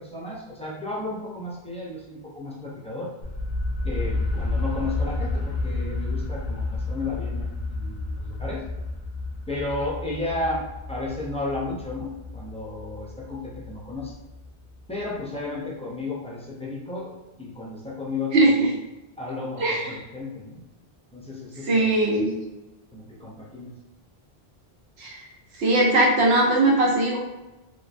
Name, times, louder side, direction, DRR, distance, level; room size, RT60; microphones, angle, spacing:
voice 1, 0.0-3.1 3.8-8.6 9.5-14.1 14.9-18.7 19.2-20.6 21.1-22.3 22.9-23.7, left 2 dB, 10° left, -5 dB, 0.3 m, -33 dB
sound 1, 3.2-15.0, left 2 dB, 85° left, 0.9 m, -31 dB
voice 2, 18.3-18.7 19.6-19.9 21.6-22.3 25.0-25.2 25.6-27.2, right 2 dB, 85° right, -2 dB, 1.0 m, -20 dB
3.0 x 2.2 x 2.5 m, 1.0 s
omnidirectional pair, 1.1 m